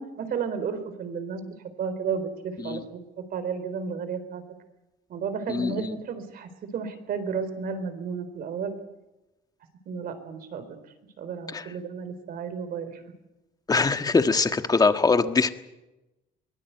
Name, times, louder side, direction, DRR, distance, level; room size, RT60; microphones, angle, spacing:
voice 1, 0.0-3.0 3.3-4.4 5.1-8.8 9.9-10.6 11.2-13.0, right 6 dB, 60° right, 11 dB, 4.0 m, -32 dB
voice 2, 5.5-6.0 11.5-11.7 13.7-15.5, left 4 dB, 20° left, 8 dB, 1.5 m, -22 dB
23.0 x 18.5 x 8.2 m, 0.99 s
cardioid pair, 110°, 17 cm